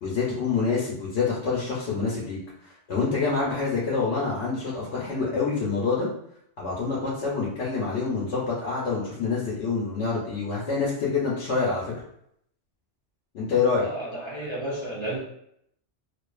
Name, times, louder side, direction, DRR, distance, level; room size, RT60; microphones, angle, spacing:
voice 1, 0.0-6.1 6.6-11.9 13.3-13.9, left 4 dB, 70° left, -6 dB, 0.9 m, -26 dB
voice 2, 13.8-15.2, right 1 dB, 35° right, -8 dB, 0.4 m, -32 dB
2.5 x 2.3 x 2.3 m, 0.73 s
omnidirectional pair, 1.2 m